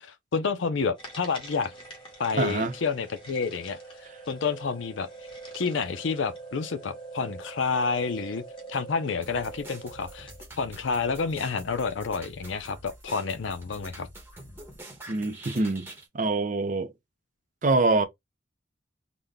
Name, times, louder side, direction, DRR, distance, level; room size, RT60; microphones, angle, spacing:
voice 1, 0.0-1.7 2.2-3.8 4.3-5.1 5.5-8.4 8.7-10.3 10.6-14.1, left 5 dB, 80° left, 0.5 m, -29 dB
sound 1, 1.0-10.5, right 3 dB, 25° left, 1.3 m, -44 dB
voice 2, 2.3-2.7 15.1-16.9 17.6-18.1, right 3 dB, 40° right, 0.6 m, -25 dB
sound 2, 9.2-16.1, right 1 dB, 10° right, 1.0 m, -46 dB
4.0 x 2.2 x 3.3 m
head